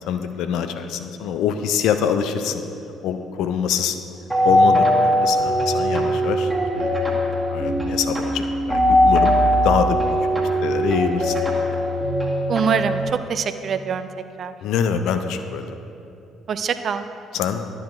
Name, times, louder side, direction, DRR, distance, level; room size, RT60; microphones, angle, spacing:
voice 1, 0.0-2.6 3.0-4.0 4.4-10.1 10.6-11.7 14.6-15.8 17.3-17.6, left 7 dB, 60° left, 8 dB, 0.4 m, -25 dB
sound 1, 4.3-13.1, equal, 5° right, 1.4 m, -20 dB
voice 2, 12.5-14.1 14.4-14.5 16.5-17.1, right 6 dB, 45° right, 11 dB, 0.3 m, -24 dB
11.5 x 7.6 x 2.5 m, 2.6 s
figure-of-eight pair, 45°, 0 cm